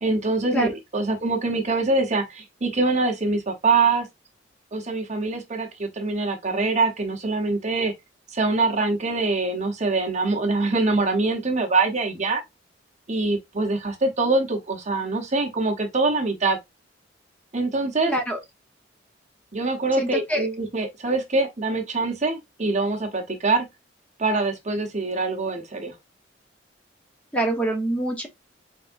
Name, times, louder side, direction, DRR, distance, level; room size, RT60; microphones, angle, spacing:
voice 1, 0.0-4.1 4.7-7.9 8.3-12.4 13.1-16.6 17.5-18.1 19.5-23.7 24.2-25.9, right 3 dB, 40° right, 0.9 m, -24 dB
voice 2, 18.1-18.4 20.0-20.5 27.3-28.3, right 1 dB, 10° left, 0.8 m, -25 dB
4.5 x 3.4 x 2.5 m
head